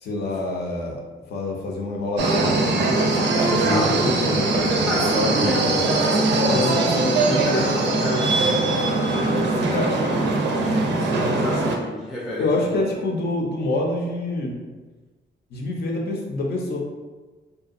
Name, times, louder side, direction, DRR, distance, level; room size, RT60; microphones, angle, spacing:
voice 1, 0.0-1.0 1.3-2.9 3.3-5.9 6.4-7.6 8.1-8.5 9.7-9.9 12.4-14.5 15.5-16.8, left 2 dB, 65° left, 0 dB, 0.6 m, -26 dB
sound 1, 2.2-11.8, right 3 dB, 80° right, 0.4 m, -21 dB
sound 2, 2.9-10.2, left 2 dB, 80° left, 0.9 m, -35 dB
voice 2, 4.8-8.3 9.2-9.9 11.0-13.1, equal, 5° right, -8 dB, 0.4 m, -30 dB
2.7 x 2.2 x 2.4 m, 1.3 s
wide cardioid pair, 155°, 18 cm